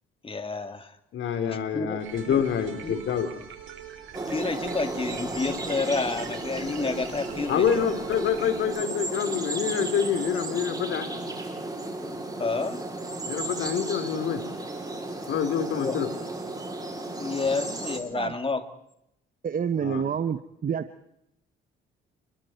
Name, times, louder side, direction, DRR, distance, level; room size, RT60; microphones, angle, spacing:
voice 1, 0.2-0.9 1.5-2.5 2.8-3.0 4.3-7.9 12.4-12.8 15.8-16.0 17.2-18.6, left 4 dB, 25° left, 8 dB, 2.8 m, -30 dB
voice 2, 1.1-3.3 7.5-11.1 13.3-14.4 15.3-16.1 19.8-20.0, left 8 dB, 70° left, 7 dB, 4.1 m, -27 dB
sound 1, 2.0-8.6, right 9 dB, 75° right, 5.0 m, -43 dB
sound 2, 4.1-18.0, right 2 dB, 20° right, 6.7 m, -34 dB
voice 3, 19.4-20.9, right 7 dB, 45° right, 11 dB, 1.2 m, -28 dB
29.5 x 22.5 x 4.6 m, 0.80 s
cardioid pair, 80°, 21 cm